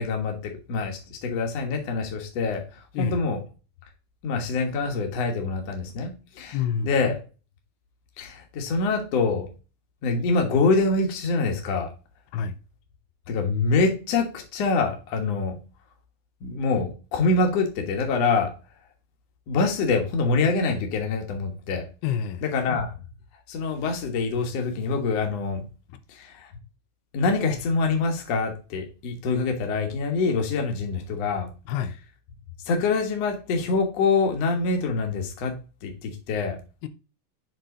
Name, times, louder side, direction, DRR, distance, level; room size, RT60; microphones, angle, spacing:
voice 1, 0.0-2.6 3.0-3.4 4.2-6.6 6.8-7.2 8.2-9.5 10.0-11.9 13.3-15.6 16.4-18.5 19.5-21.8 22.4-22.9 23.5-25.7 26.1-26.5 27.1-31.5 32.7-35.5 35.8-36.6, left 4 dB, 55° left, 2.0 m, -25 dB
voice 2, 6.5-6.9 12.3-12.6 22.0-22.4 25.9-26.0 31.7-32.0 36.8-36.9, left 8 dB, 85° left, 2.7 m, -28 dB
7.6 x 3.8 x 3.8 m
omnidirectional pair, 4.4 m